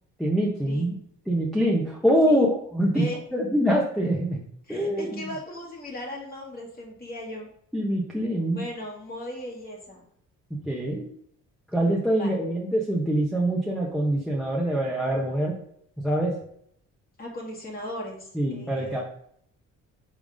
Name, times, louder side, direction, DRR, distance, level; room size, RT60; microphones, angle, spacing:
voice 1, 0.2-0.9 1.3-2.5 2.7-3.1 3.3-4.4 4.7-5.3 7.7-8.6 10.6-11.0 11.7-15.6 16.0-16.3 18.3-19.0, equal, ahead, -3 dB, 1.3 m, -24 dB
voice 2, 4.7-7.5 8.5-10.0 12.2-12.3 17.2-19.0, left 1 dB, 30° left, -2 dB, 2.1 m, -37 dB
5.6 x 3.6 x 5.0 m, 0.67 s
cardioid pair, 90°, 30 cm